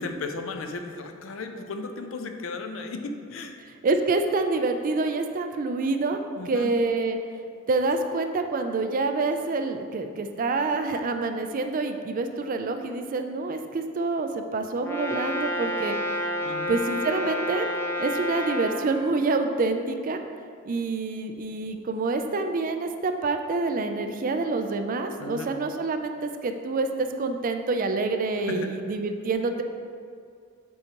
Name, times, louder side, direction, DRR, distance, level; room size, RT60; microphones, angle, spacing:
voice 1, 0.0-3.6 6.4-6.7 16.4-16.8 25.2-25.5 28.5-28.7, left 3 dB, 70° left, 5 dB, 0.5 m, -35 dB
voice 2, 3.8-6.2 6.5-7.2 7.7-16.2 16.7-17.7 18.0-20.2 20.6-29.6, right 3 dB, 40° right, 7 dB, 0.4 m, -27 dB
Brass instrument, 14.8-18.8, left 1 dB, 10° left, 0.6 m, -29 dB
7.6 x 4.8 x 2.9 m, 2.3 s
head